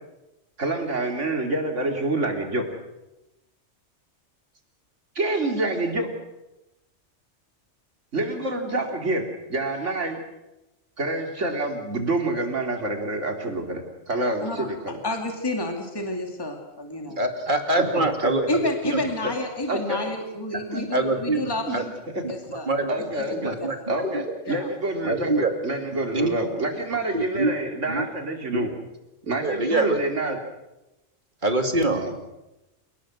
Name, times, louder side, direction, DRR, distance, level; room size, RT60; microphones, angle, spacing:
voice 1, 0.6-2.7 5.2-6.1 8.1-10.2 11.0-15.0 17.9-18.3 19.7-20.0 20.7-20.9 21.7-21.8 22.1-22.4 22.9-23.6 23.9-28.7 29.2-30.4 31.9-32.1, right 2 dB, 80° right, 3 dB, 3.5 m, -27 dB
voice 2, 15.0-17.2 18.5-21.9 22.3-22.8 23.1-23.7 24.5-24.7, left 1 dB, 20° left, 3 dB, 2.5 m, -30 dB
voice 3, 17.2-19.0 20.9-21.4 21.7-21.8 22.2-22.9 23.4-24.3 25.0-25.5 25.9-26.3 27.1-27.5 27.9-28.0 28.5-28.6 29.3-30.0 31.4-32.1, right 2 dB, 45° right, 5 dB, 2.8 m, -25 dB
28.0 x 19.0 x 6.4 m, 0.96 s
omnidirectional pair, 1.2 m